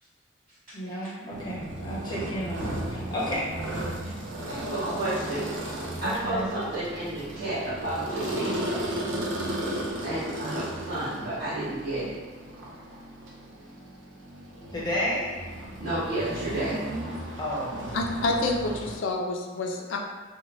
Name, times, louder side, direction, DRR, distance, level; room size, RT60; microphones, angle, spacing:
voice 1, 0.7-3.5 6.0-6.5 14.7-15.4 17.4-17.9, equal, 20° left, -7 dB, 0.6 m, -32 dB
sound 1, 1.3-19.0, right 1 dB, 70° right, 0.5 m, -35 dB
voice 2, 4.5-5.5 6.0-8.8 10.0-12.2 15.8-16.8, right 1 dB, 45° right, -15 dB, 1.1 m, -31 dB
voice 3, 17.9-20.0, left 2 dB, 70° left, 1 dB, 0.4 m, -28 dB
2.9 x 2.2 x 2.9 m, 1.3 s
head